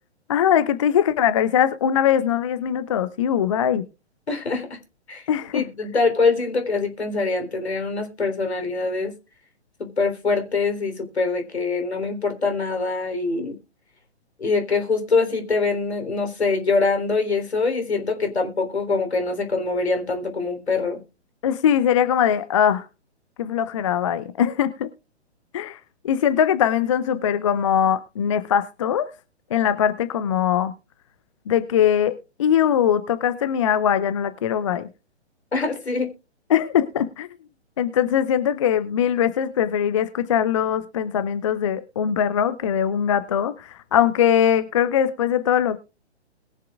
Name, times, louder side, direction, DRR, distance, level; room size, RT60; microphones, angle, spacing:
voice 1, 0.3-3.8 5.3-5.6 21.4-22.9 23.4-24.9 25.5-25.8 26.0-29.1 29.5-30.7 31.5-34.9 36.5-37.3 37.8-45.8, left 9 dB, 30° left, 12 dB, 0.5 m, -21 dB
voice 2, 4.3-4.7 5.1-9.1 9.8-13.5 14.4-21.0 35.5-36.1, left 4 dB, 65° left, 6 dB, 3.7 m, -24 dB
21.0 x 7.5 x 2.4 m, 0.31 s
figure-of-eight pair, 125°, 34 cm